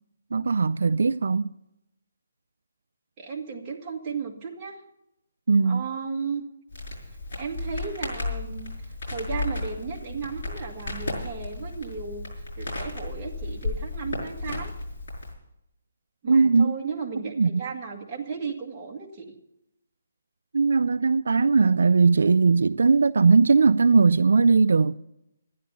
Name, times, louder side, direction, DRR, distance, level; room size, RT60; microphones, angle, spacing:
voice 1, 0.3-1.5 5.5-5.9 16.3-16.7 17.4-17.6 20.5-25.0, right 4 dB, 75° right, 0.4 m, -19 dB
voice 2, 3.2-4.8 5.6-6.4 7.4-12.3 12.6-14.7 16.2-19.3, right 5 dB, 15° right, 1.9 m, -35 dB
Crackle, 6.7-15.3, left 2 dB, 55° left, 5.6 m, -34 dB
12.5 x 10.0 x 6.9 m
hypercardioid pair, 175°, 0 cm